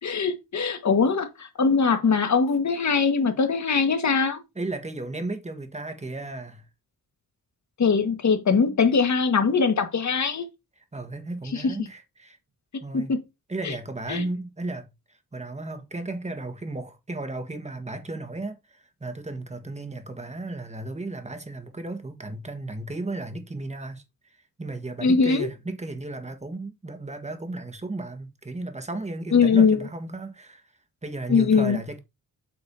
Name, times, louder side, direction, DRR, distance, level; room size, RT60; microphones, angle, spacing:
voice 1, 0.0-4.4 7.8-10.5 11.5-11.7 12.9-13.2 13.6-13.7 14.1-14.2 25.0-25.5 29.3-29.9 31.3-31.8, left 5 dB, 50° left, 1.7 m, -21 dB
voice 2, 4.5-6.6 10.9-12.4 12.8-13.1 13.5-14.9 15.3-24.0 24.6-30.6 31.0-32.0, right 2 dB, 20° right, 1.5 m, -34 dB
8.4 x 6.5 x 2.8 m
cardioid pair, 90°, 36 cm